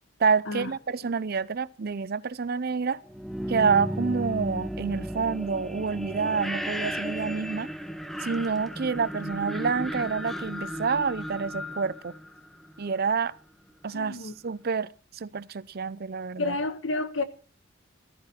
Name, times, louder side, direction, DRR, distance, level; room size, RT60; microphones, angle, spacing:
voice 1, 0.2-3.0 3.5-7.7 8.2-12.1 12.8-13.4 13.8-16.6, right 5 dB, 50° right, 0.5 m, -28 dB
sound 1, 3.0-12.9, equal, ahead, 0.9 m, -34 dB
voice 2, 13.9-14.3 16.4-17.2, left 3 dB, 75° left, 1.4 m, -30 dB
14.0 x 14.0 x 4.4 m
head